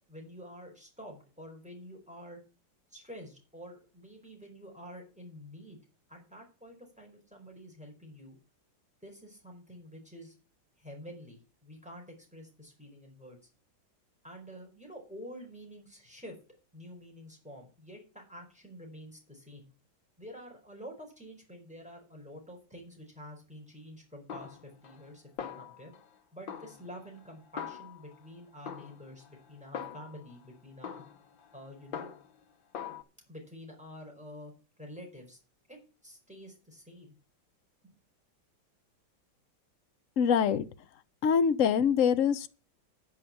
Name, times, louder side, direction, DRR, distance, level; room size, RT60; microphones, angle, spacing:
voice 1, 0.1-2.4 2.9-5.8 6.1-8.4 9.0-10.3 10.8-13.5 14.2-16.3 16.7-19.7 20.2-25.9 26.3-31.0 31.5-32.1 33.3-34.5 34.8-35.4 35.7-37.2 37.8-37.9, equal, 5° right, 4.8 m, -48 dB
Snare drum, 24.3-25.1 25.4-26.1 26.5-28.3 28.7-30.3 30.8-32.4 32.7-33.0, left 8 dB, 80° left, 1.9 m, -43 dB
voice 2, 40.2-40.7 41.2-42.5, left 7 dB, 50° left, 1.1 m, -24 dB
10.0 x 6.2 x 8.6 m
omnidirectional pair, 2.1 m